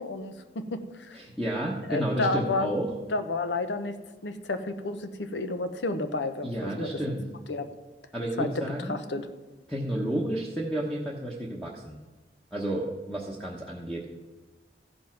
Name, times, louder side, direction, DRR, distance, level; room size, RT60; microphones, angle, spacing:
voice 1, 0.0-1.2 1.9-2.7 3.1-6.9 7.5-7.7 8.4-8.6 8.9-9.3, left 2 dB, 90° left, 9 dB, 0.8 m, -31 dB
voice 2, 1.1-2.9 6.4-7.2 8.1-8.9 9.7-12.0 12.5-14.1, right 1 dB, 5° left, -3 dB, 1.0 m, -31 dB
14.5 x 5.4 x 5.8 m, 1.1 s
head